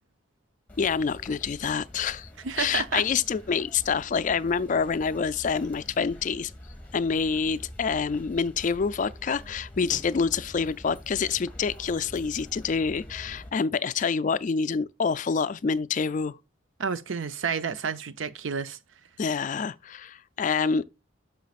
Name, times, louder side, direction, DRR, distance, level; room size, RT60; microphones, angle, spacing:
sound 1, 0.7-13.5, left 1 dB, 10° left, 1.8 m, -46 dB
voice 1, 0.8-2.3 2.6-6.5 6.9-16.4 19.2-20.8, left 5 dB, 40° left, 0.3 m, -27 dB
voice 2, 2.4-3.0 16.8-18.8, right 6 dB, 75° right, 0.6 m, -30 dB
9.2 x 6.4 x 2.4 m
head